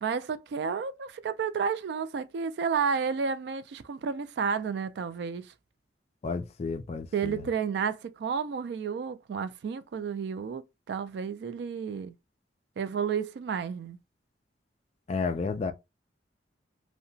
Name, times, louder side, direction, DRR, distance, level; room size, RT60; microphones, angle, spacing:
voice 1, 0.0-5.5 7.1-12.1 12.8-14.0, right 6 dB, 65° right, 0.3 m, -31 dB
voice 2, 6.2-7.5 15.1-15.7, left 4 dB, 35° left, 0.3 m, -32 dB
2.8 x 2.1 x 2.6 m
head